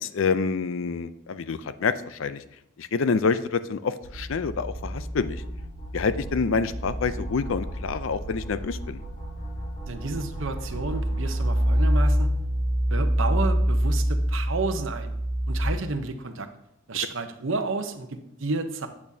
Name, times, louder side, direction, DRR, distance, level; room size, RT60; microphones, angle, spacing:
voice 1, 0.0-2.4 2.8-5.4 5.9-9.0, left 5 dB, 65° left, 13 dB, 0.4 m, -27 dB
sound 1, 4.0-15.6, equal, 45° left, 3.2 m, -27 dB
voice 2, 9.9-12.3 12.9-15.1 15.5-16.5 16.9-18.9, right 3 dB, 65° right, 7 dB, 0.8 m, -31 dB
8.6 x 8.5 x 2.7 m, 0.82 s
head